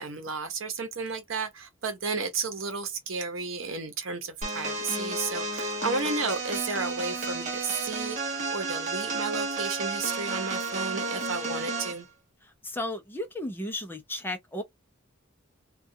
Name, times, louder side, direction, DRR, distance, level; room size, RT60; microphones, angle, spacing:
voice 1, 0.0-12.1, right 4 dB, 75° right, 0.8 m, -33 dB
sound 1, 4.4-12.0, right 3 dB, 35° right, 0.9 m, -32 dB
voice 2, 12.4-14.6, left 1 dB, 10° left, 0.5 m, -34 dB
2.4 x 2.3 x 2.6 m
head